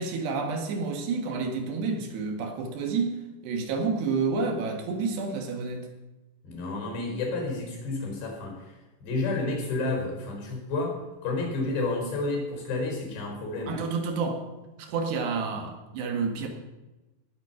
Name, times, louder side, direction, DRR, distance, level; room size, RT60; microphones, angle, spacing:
voice 1, 0.0-3.2 3.4-5.9 13.7-14.4 14.8-16.5, right 4 dB, 80° right, 4 dB, 3.9 m, -29 dB
voice 2, 6.4-8.6 9.0-11.0 11.2-13.9, left 2 dB, 80° left, 1 dB, 6.8 m, -30 dB
19.0 x 8.4 x 5.8 m, 1.1 s
omnidirectional pair, 4.8 m